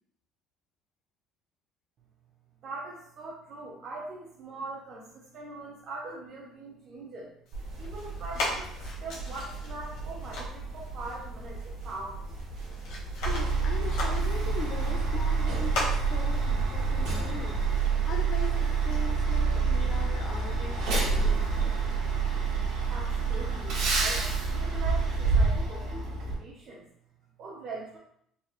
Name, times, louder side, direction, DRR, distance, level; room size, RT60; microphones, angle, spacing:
voice 1, 2.6-7.3 7.8-12.3 22.9-26.9 27.4-28.0, right 3 dB, 40° right, -4 dB, 0.5 m, -42 dB
sound 1, 7.5-19.1, left 2 dB, 85° left, 1.2 m, -40 dB
sound 2, 7.5-24.5, right 3 dB, 65° right, 0.9 m, -40 dB
Truck, 13.2-26.3, right 4 dB, 80° right, 1.2 m, -27 dB
voice 2, 13.3-21.5, left 5 dB, 45° left, 2 dB, 0.5 m, -41 dB
4.0 x 2.3 x 3.0 m, 0.70 s
cardioid pair, 170°, 0 cm